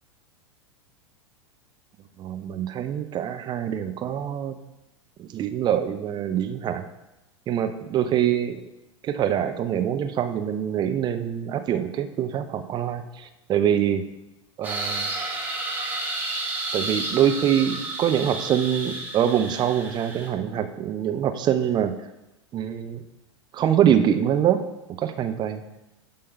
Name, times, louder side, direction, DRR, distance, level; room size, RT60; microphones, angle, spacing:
voice 1, 2.2-4.6 5.2-6.9 7.5-8.6 9.0-14.0 14.6-15.1 16.7-22.1 22.5-23.0 23.5-24.6 25.0-25.6, right 9 dB, 30° right, 8 dB, 0.7 m, -24 dB
sound 1, 14.6-20.3, right 2 dB, 10° right, 1.6 m, -31 dB
11.0 x 3.7 x 5.4 m, 0.96 s
figure-of-eight pair, 90°, 15 cm